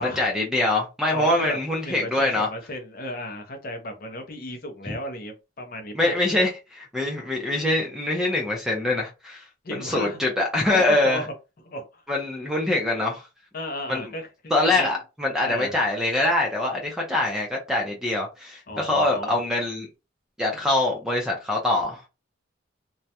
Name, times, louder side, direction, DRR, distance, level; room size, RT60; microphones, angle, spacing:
voice 1, 0.0-2.5 5.9-9.5 9.7-11.2 12.1-13.3 13.9-14.0 14.5-19.9 20.4-22.0, left 2 dB, 5° right, 0.4 m, -24 dB
voice 2, 1.1-6.1 9.6-10.2 10.7-11.3 11.7-12.0 13.5-15.0 15.4-15.8 18.7-19.4, left 1 dB, 45° left, 0.5 m, -34 dB
2.3 x 2.1 x 2.7 m
head